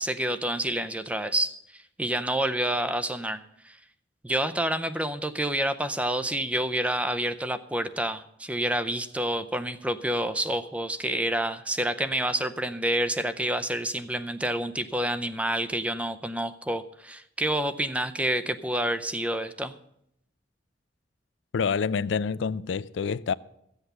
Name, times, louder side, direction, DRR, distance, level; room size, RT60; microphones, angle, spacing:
voice 1, 0.0-3.8 4.2-19.7, right 1 dB, 5° right, 0.5 m, -28 dB
voice 2, 21.5-23.3, left 5 dB, 90° left, 0.4 m, -27 dB
14.5 x 8.1 x 6.7 m
head